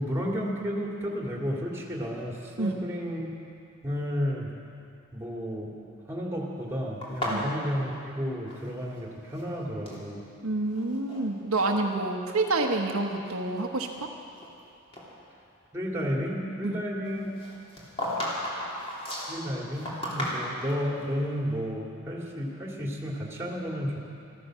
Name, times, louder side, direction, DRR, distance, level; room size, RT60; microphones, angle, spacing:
voice 1, 0.0-3.3 3.8-4.5 5.1-5.7 6.1-10.2 15.7-17.3 19.3-24.1, equal, 10° right, -2 dB, 2.2 m, -32 dB
sound 1, 7.0-9.0 9.3-10.0 10.7-11.2 11.6-11.8 12.4-12.5 13.1-14.6 14.9-15.1 17.4-20.8, left 1 dB, 30° left, 3.1 m, -35 dB
voice 2, 10.4-14.1 16.6-16.8, right 2 dB, 80° right, 2 dB, 1.1 m, -28 dB
14.5 x 14.0 x 6.3 m, 2.5 s
head